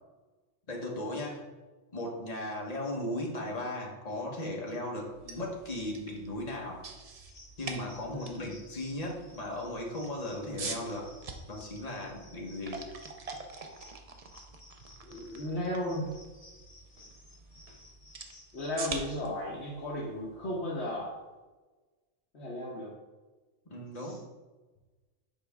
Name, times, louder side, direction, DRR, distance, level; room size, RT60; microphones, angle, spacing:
voice 1, 0.7-1.5 1.9-6.8 7.6-11.1 11.5-12.9 23.7-24.2, left 1 dB, 35° left, -1 dB, 1.2 m, -37 dB
sound 1, 5.1-21.0, right 4 dB, 45° right, 0.5 m, -46 dB
sound 2, 7.3-19.0, left 2 dB, 80° left, 2.1 m, -57 dB
voice 2, 8.1-8.6 15.0-16.1 18.5-21.1 22.3-22.9 24.0-24.2, left 1 dB, 60° left, -5 dB, 1.3 m, -35 dB
7.2 x 5.0 x 3.5 m, 1.2 s
omnidirectional pair, 1.3 m